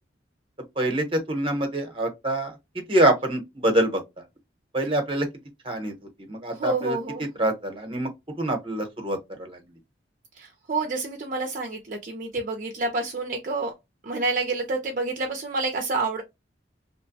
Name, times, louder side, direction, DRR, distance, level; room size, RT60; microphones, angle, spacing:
voice 1, 0.8-4.2 4.7-5.3 5.6-5.9 6.2-8.1 8.4-9.6, right 1 dB, 30° right, 0.8 m, -25 dB
voice 2, 6.6-7.3 10.4-13.7 14.0-16.2, right 3 dB, 45° right, 0.5 m, -28 dB
2.9 x 2.1 x 2.6 m
head